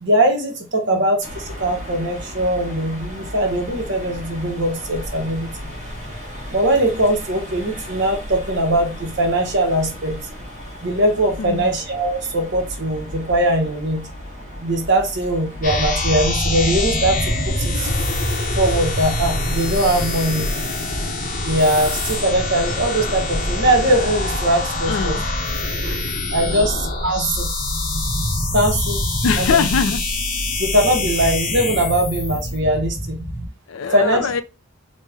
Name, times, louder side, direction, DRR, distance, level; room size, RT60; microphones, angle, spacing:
voice 1, 0.0-5.5 6.5-10.2 10.8-14.0 14.6-17.9 18.6-20.6 21.4-25.2 25.8-26.0 26.3-27.5 28.5-29.0 29.4-29.5 30.6-33.2 33.9-34.3, right 1 dB, 55° right, 0.9 m, -21 dB
sound 1, 1.2-21.1, equal, 35° right, 1.1 m, -35 dB
sound 2, 15.6-33.5, left 1 dB, 40° left, 0.7 m, -24 dB
voice 2, 24.9-25.2 26.5-26.6 29.2-30.0 33.7-34.4, left 6 dB, 70° left, 0.4 m, -22 dB
3.2 x 2.1 x 3.3 m
head